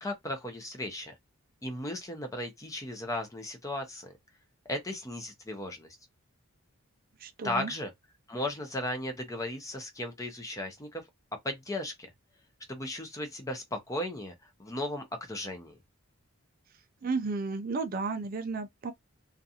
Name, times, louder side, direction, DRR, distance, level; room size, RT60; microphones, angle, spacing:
voice 1, 0.0-1.1 1.6-4.1 4.7-5.9 7.4-7.9 8.3-11.0 11.4-12.1 12.7-15.8, left 1 dB, 15° left, 0.5 m, -36 dB
voice 2, 7.2-7.7 17.0-18.9, right 4 dB, 40° right, 0.4 m, -33 dB
2.5 x 2.3 x 2.7 m
head